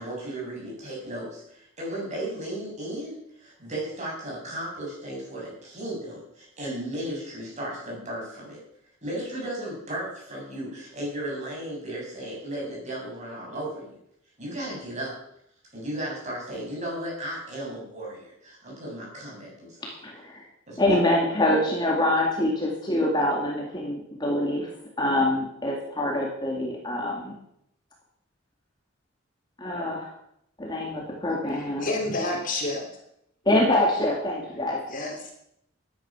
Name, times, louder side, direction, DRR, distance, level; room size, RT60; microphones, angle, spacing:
voice 1, 0.0-8.6 9.0-14.0 14.4-15.2 15.7-19.9 20.7-20.9, right 1 dB, 35° right, -3 dB, 7.2 m, -35 dB
voice 2, 19.8-20.4 20.8-24.7 25.0-27.3 29.6-30.1 30.6-31.9 33.5-34.8, left 1 dB, 20° left, -1 dB, 2.3 m, -25 dB
voice 3, 31.5-32.8 34.9-35.3, left 2 dB, 40° left, 1 dB, 3.2 m, -29 dB
14.5 x 10.0 x 6.2 m, 0.74 s
head